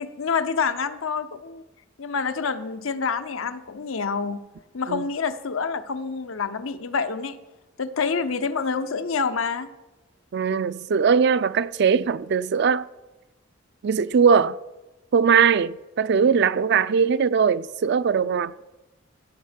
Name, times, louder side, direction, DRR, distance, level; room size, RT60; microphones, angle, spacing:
voice 1, 0.0-1.6 2.0-4.4 4.7-7.4 7.8-9.7, left 5 dB, 90° left, 0.7 m, -27 dB
voice 2, 10.3-12.9 13.8-14.6 15.1-18.6, right 6 dB, 55° right, 0.4 m, -20 dB
15.0 x 6.4 x 5.1 m
head